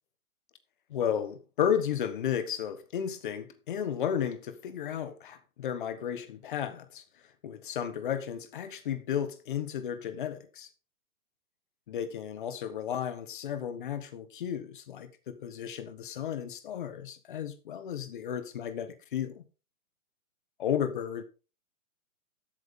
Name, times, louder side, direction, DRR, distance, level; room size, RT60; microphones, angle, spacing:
voice 1, 0.9-7.0 7.4-10.7 11.9-19.4 20.6-21.2, left 9 dB, 35° left, 1.3 m, -33 dB
13.0 x 8.4 x 3.7 m
hypercardioid pair, 170°, 43 cm